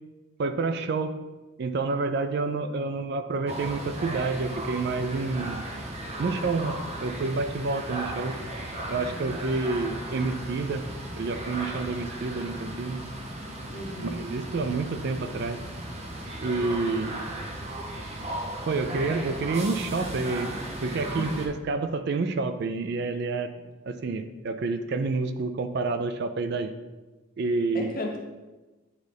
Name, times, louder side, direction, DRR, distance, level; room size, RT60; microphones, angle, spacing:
voice 1, 0.4-1.1 1.6-5.7 6.2-6.8 7.0-8.3 8.9-10.8 11.1-13.0 14.2-15.6 16.4-17.3 18.7-20.5 20.8-23.5 23.9-26.7 27.4-27.9, right 3 dB, 50° right, 9 dB, 0.4 m, -28 dB
sound 1, 3.5-21.5, right 1 dB, 30° right, 0.7 m, -36 dB
voice 2, 9.0-9.4 13.7-14.2 18.9-19.0 21.2-21.4 23.6-23.7 27.7-28.2, left 1 dB, 40° left, 0 dB, 0.9 m, -36 dB
8.2 x 3.9 x 3.4 m, 1.1 s
head